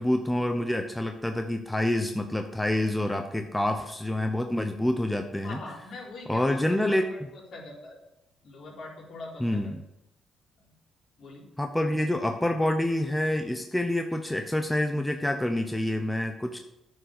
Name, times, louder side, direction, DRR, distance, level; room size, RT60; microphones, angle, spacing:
voice 1, 0.0-5.6 6.3-7.1 9.4-9.8 11.6-16.6, left 1 dB, 5° left, 5 dB, 0.8 m, -27 dB
voice 2, 5.4-8.0 8.4-9.6 10.7-10.8 11.2-11.4, left 2 dB, 60° left, -3 dB, 3.9 m, -42 dB
9.6 x 5.5 x 6.6 m, 0.88 s
cardioid pair, 90°, 0 cm